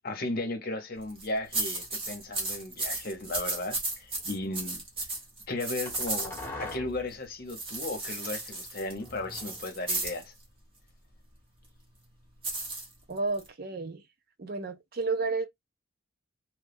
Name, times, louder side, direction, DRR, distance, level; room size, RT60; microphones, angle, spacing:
voice 1, 0.0-4.8 5.5-10.3, left 2 dB, 45° left, 0.9 m, -35 dB
sound 1, 1.0-6.7 7.5-10.2 12.4-13.5, right 2 dB, 25° right, 1.0 m, -34 dB
sound 2, 4.2-4.5 5.8-7.1 9.0-10.2, left 2 dB, 10° left, 1.1 m, -43 dB
voice 2, 13.1-14.0 14.4-15.5, right 3 dB, 45° right, 0.5 m, -31 dB
3.1 x 2.3 x 3.4 m
head